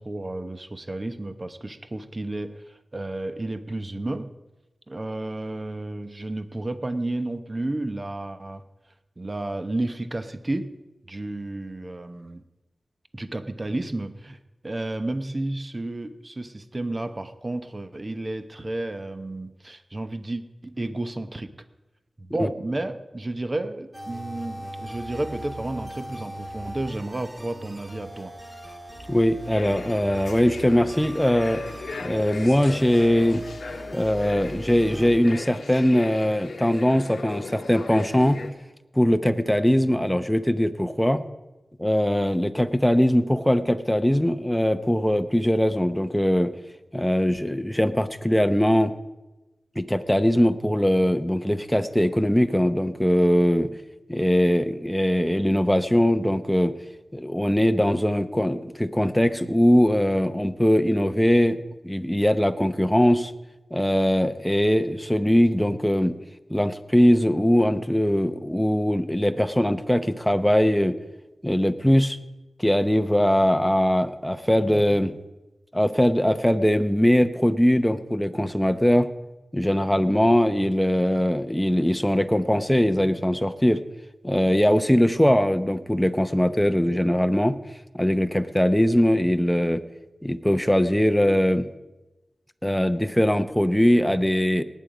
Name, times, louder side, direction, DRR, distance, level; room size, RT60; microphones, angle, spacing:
voice 1, 0.0-4.3 4.9-8.6 9.2-10.7 11.1-12.4 13.1-14.4 14.6-21.5 22.2-28.3, right 2 dB, 30° right, 10 dB, 0.9 m, -32 dB
sound 1, 23.9-35.2, equal, 15° right, 1.7 m, -39 dB
voice 2, 29.1-31.6 32.0-33.4 33.9-38.4 38.9-41.2 41.8-46.5 46.9-48.9 49.8-53.7 54.1-56.7 57.1-61.6 61.8-63.3 63.7-66.2 66.5-71.0 71.4-72.2 72.6-75.2 75.7-79.1 79.5-83.8 84.2-87.6 87.9-89.8 90.2-91.7 92.6-94.6, equal, 5° left, 9 dB, 0.8 m, -21 dB
sound 2, 29.5-38.5, left 4 dB, 80° left, 0.9 m, -39 dB
18.5 x 9.4 x 5.0 m, 1.1 s
wide cardioid pair, 80°, 0 cm